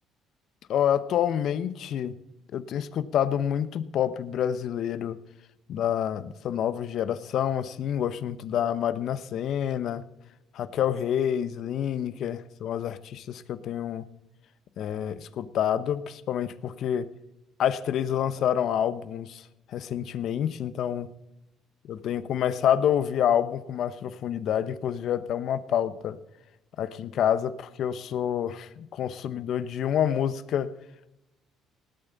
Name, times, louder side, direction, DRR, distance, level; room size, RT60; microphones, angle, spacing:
voice 1, 0.7-2.1 2.5-5.2 5.7-10.0 10.5-14.0 14.8-17.1 17.6-21.1 21.8-26.2 26.8-30.7, left 9 dB, 65° left, 14 dB, 0.9 m, -28 dB
19.0 x 9.0 x 4.0 m, 0.89 s
cardioid pair, 95°, 0 cm